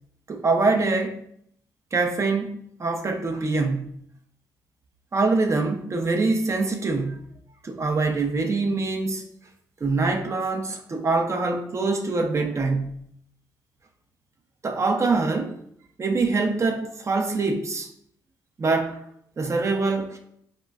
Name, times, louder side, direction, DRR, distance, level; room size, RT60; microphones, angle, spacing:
voice 1, 0.3-1.2 1.9-4.0 5.1-7.3 7.6-9.3 9.8-13.0 14.6-15.6 16.0-17.9 18.6-19.0 19.4-20.2, right 3 dB, 40° right, 0.5 m, -24 dB
3.9 x 2.2 x 2.2 m
supercardioid pair, 55°, 8 cm